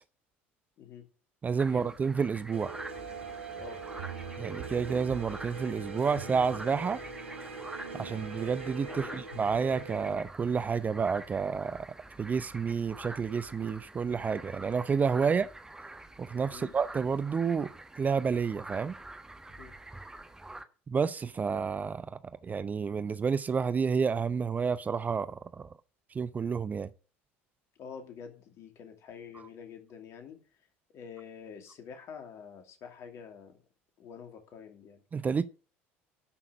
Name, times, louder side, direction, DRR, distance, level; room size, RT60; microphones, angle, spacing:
voice 1, 1.4-2.8 4.4-7.0 7.9-11.9 12.2-15.5 16.2-17.7 18.0-19.0 20.9-22.1 22.4-25.7 26.1-26.9 35.1-35.5, right 6 dB, 25° right, 0.5 m, -30 dB
sound 1, 1.6-20.6, right 2 dB, 10° right, 1.3 m, -47 dB
sound 2, 2.5-10.2, right 4 dB, 80° right, 1.6 m, -42 dB
voice 2, 8.9-9.2 15.3-15.4 16.5-16.7 19.6-19.7 27.8-30.4 30.9-33.6 34.0-35.0, left 6 dB, 45° left, 2.6 m, -47 dB
11.5 x 5.9 x 6.1 m
figure-of-eight pair, 65°, 7 cm